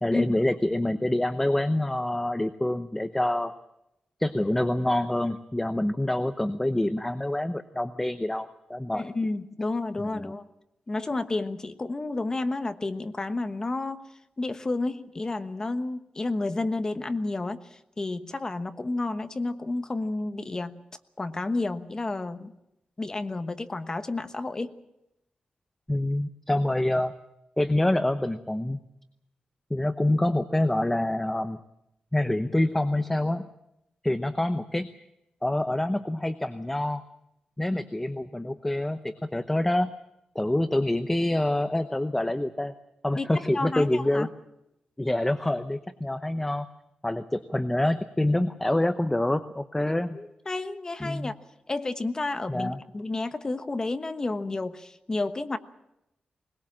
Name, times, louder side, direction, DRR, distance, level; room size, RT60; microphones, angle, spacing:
voice 1, 0.0-3.5 4.2-9.0 10.1-10.3 25.9-27.1 27.6-28.8 29.7-31.6 32.1-33.4 34.0-34.9 35.4-37.0 37.6-39.9 40.3-42.7 43.0-44.3 45.0-46.7 47.0-50.2 51.0-51.3 52.5-52.8, left 1 dB, 10° left, 10 dB, 0.8 m, -26 dB
voice 2, 8.9-10.4 10.9-14.1 14.4-20.8 21.2-22.5 23.0-24.7 43.1-43.3 43.5-44.3 49.9-51.3 51.7-55.6, left 2 dB, 25° left, 9 dB, 1.2 m, -31 dB
21.0 x 21.0 x 7.4 m, 0.85 s
wide cardioid pair, 150°, 3 cm